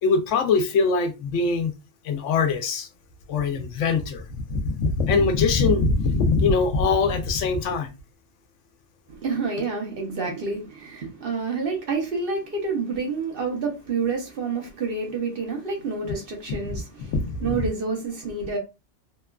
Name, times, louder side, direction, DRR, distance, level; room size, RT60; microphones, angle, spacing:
voice 1, 0.0-1.7 2.0-2.9 3.3-7.9 16.6-16.8 17.1-17.7, left 4 dB, 80° left, 0.9 m, -22 dB
voice 2, 9.1-17.1 17.4-18.6, right 4 dB, 55° right, 0.9 m, -28 dB
2.9 x 2.3 x 2.2 m
omnidirectional pair, 1.2 m